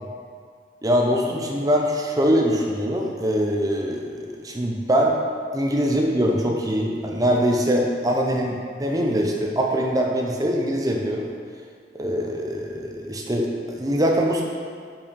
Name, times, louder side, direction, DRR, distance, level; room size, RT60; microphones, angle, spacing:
voice 1, 0.8-5.2 5.5-11.3 11.9-14.4, equal, 20° right, 0 dB, 0.7 m, -23 dB
5.6 x 4.6 x 5.2 m, 2.1 s
head